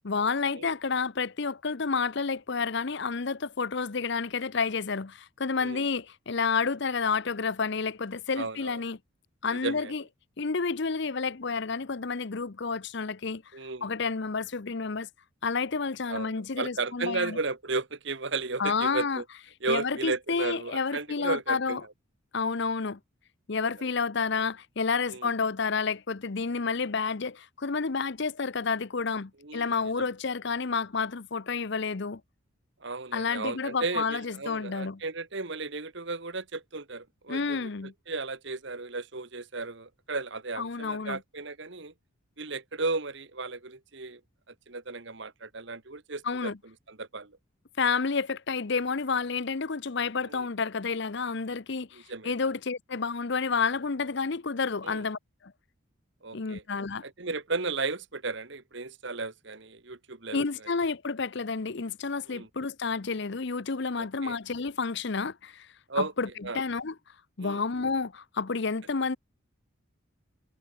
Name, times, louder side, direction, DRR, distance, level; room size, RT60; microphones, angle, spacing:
voice 1, 0.0-9.0 9.4-10.0 10.4-13.4 13.8-15.1 15.4-17.4 18.6-19.2 19.7-21.8 22.3-23.0 23.5-32.2 33.1-35.0 37.3-37.9 40.6-41.2 46.2-46.6 47.8-55.5 56.3-57.0 60.3-65.7 66.0-66.3 66.5-66.9 67.4-69.2, left 4 dB, 55° left, 0.7 m, -30 dB
voice 2, 8.3-8.8 9.5-9.9 13.5-13.9 16.1-19.2 19.6-21.8 23.6-23.9 25.1-25.3 29.4-30.1 32.8-37.7 38.1-41.9 42.4-44.2 44.7-46.5 46.9-47.4 50.3-50.5 51.9-52.3 54.8-55.0 56.2-56.6 57.0-60.4 62.3-62.5 64.0-64.4 65.9-66.1 66.4-66.6 67.4-67.6, right 3 dB, 55° right, 1.6 m, -34 dB
head